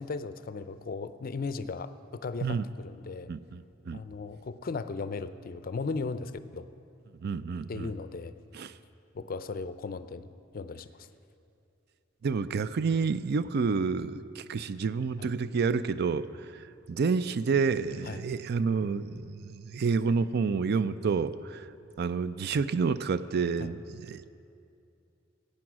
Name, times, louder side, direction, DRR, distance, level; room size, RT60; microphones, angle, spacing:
voice 1, 0.0-3.3 3.9-6.7 7.7-8.3 9.1-10.3 10.5-11.1 15.2-15.3 18.1-18.2 23.6-23.7, left 4 dB, 50° left, 13 dB, 0.5 m, -36 dB
voice 2, 3.3-4.0 7.2-7.9 8.5-8.7 12.2-21.7 22.0-24.3, right 5 dB, 55° right, 15 dB, 0.4 m, -29 dB
15.5 x 8.7 x 6.1 m, 2.6 s
head